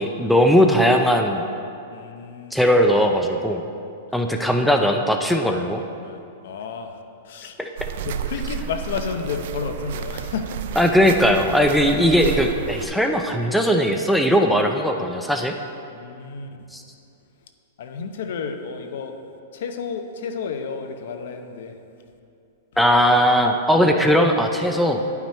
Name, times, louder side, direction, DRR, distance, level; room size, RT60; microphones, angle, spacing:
voice 1, 0.0-1.4 2.5-3.6 4.1-5.8 7.6-7.7 10.8-15.5 16.7-16.8 22.8-25.0, equal, ahead, 3 dB, 0.4 m, -19 dB
voice 2, 1.9-2.7 6.0-7.6 8.0-10.6 15.9-16.5 17.8-19.2 19.5-21.8, left 5 dB, 70° left, 6 dB, 0.8 m, -31 dB
sound 1, 7.8-12.9, right 8 dB, 60° right, 0.4 m, -31 dB
10.5 x 5.9 x 4.4 m, 2.6 s
hypercardioid pair, 150°, 0 cm